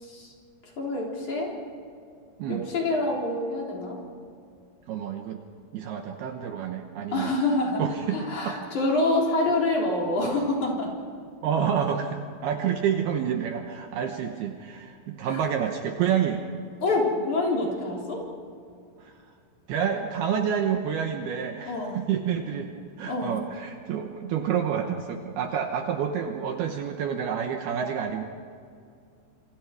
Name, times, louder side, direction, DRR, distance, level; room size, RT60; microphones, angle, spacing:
voice 1, 0.0-0.3 0.8-1.5 2.5-4.0 7.1-7.8 8.1-10.9 15.2-15.5 16.8-18.2 21.6-22.0 23.1-23.3, left 2 dB, 40° left, -2 dB, 4.8 m, -26 dB
voice 2, 4.9-5.4 5.7-7.3 7.8-8.7 11.4-16.4 19.0-19.1 19.7-22.7 23.0-28.2, right 8 dB, 70° right, 4 dB, 2.6 m, -28 dB
27.5 x 25.5 x 4.8 m, 2.4 s
omnidirectional pair, 5.4 m